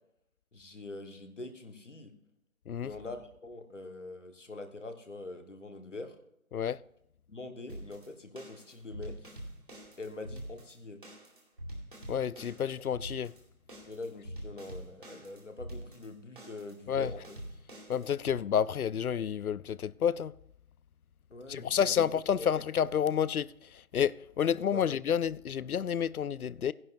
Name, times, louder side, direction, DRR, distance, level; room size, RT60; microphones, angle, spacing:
voice 1, 0.5-2.1 2.8-6.1 7.3-9.2 10.0-11.0 13.9-17.2 17.7-17.8 21.3-21.9 22.4-22.5 24.7-24.9, left 2 dB, 55° left, 1.5 m, -44 dB
sound 1, 7.7-18.4, right 1 dB, 35° right, 2.1 m, -45 dB
voice 2, 12.1-13.3 16.9-17.1 17.9-20.3 21.5-26.7, left 8 dB, 85° left, 0.5 m, -30 dB
14.0 x 11.0 x 2.6 m
figure-of-eight pair, 175°, 43 cm